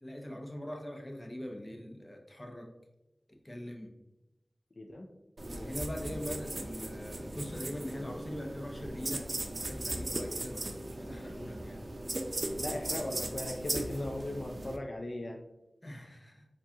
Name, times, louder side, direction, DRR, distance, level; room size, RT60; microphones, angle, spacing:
voice 1, 0.0-2.7 3.3-3.9 5.4-11.8 15.8-16.5, equal, 30° left, 2 dB, 0.7 m, -42 dB
voice 2, 4.8-5.1 5.5-5.8 12.6-15.4, left 1 dB, 65° left, 1 dB, 0.3 m, -38 dB
sound 1, 5.4-14.8, right 2 dB, 60° right, 0.4 m, -38 dB
4.5 x 2.4 x 2.7 m, 0.92 s
wide cardioid pair, 40°, 0 cm